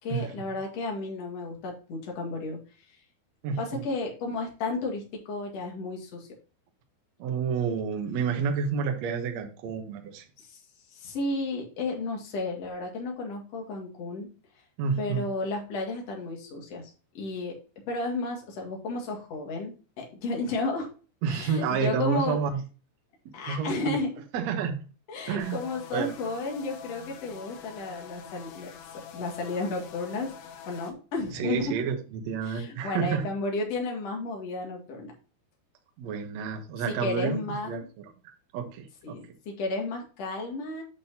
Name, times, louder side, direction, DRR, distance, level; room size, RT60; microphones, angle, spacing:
voice 1, 0.0-2.6 3.6-6.3 10.4-10.6 10.9-14.3 15.0-17.6 17.9-20.9 21.3-22.4 23.3-24.1 25.1-28.7 29.1-30.3 30.7-31.8 32.4-35.1 36.9-37.9 39.0-40.8, left 3 dB, 45° left, 0 dB, 2.5 m, -33 dB
voice 2, 3.4-3.8 7.2-10.3 14.8-15.2 21.2-22.6 23.5-24.0 24.3-24.8 25.3-25.7 25.9-26.1 31.3-33.2 36.0-37.8 38.5-39.2, right 6 dB, 65° right, 4 dB, 1.8 m, -29 dB
sound 1, 25.4-30.9, left 7 dB, 80° left, 3.1 m, -46 dB
8.6 x 6.2 x 2.8 m, 0.35 s
omnidirectional pair, 4.6 m